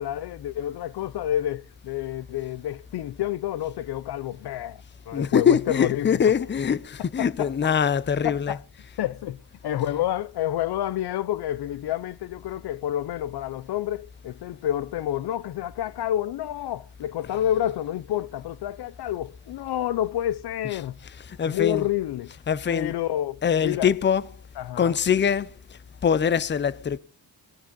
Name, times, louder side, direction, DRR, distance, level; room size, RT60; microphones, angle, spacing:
voice 1, 0.0-6.2 7.2-7.5 8.2-8.6 9.0-21.0 21.4-22.3 22.7-23.9 24.6-24.9, left 12 dB, 90° left, 0.8 m, -29 dB
voice 2, 5.1-8.6 17.3-17.4 20.6-21.8 22.5-22.9 23.4-24.4 24.8-25.5 26.0-27.0, left 7 dB, 30° left, 0.7 m, -23 dB
17.0 x 13.0 x 5.4 m
cardioid pair, 125°, 38 cm